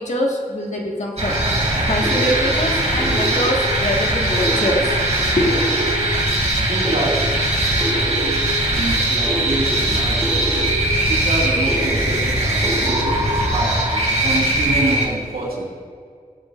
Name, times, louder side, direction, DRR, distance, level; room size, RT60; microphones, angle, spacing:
voice 1, 0.0-1.4 1.9-5.0 5.4-5.5, left 1 dB, 50° left, -1 dB, 1.8 m, -23 dB
sound 1, 1.2-15.1, right 1 dB, 50° right, 2.8 m, -20 dB
sound 2, 1.3-13.8, equal, 15° right, 1.3 m, -27 dB
voice 2, 6.6-7.4 8.7-10.4 11.0-15.7, right 2 dB, 90° right, -5 dB, 2.4 m, -27 dB
18.5 x 7.4 x 2.6 m, 2.1 s
wide cardioid pair, 60°, 15 cm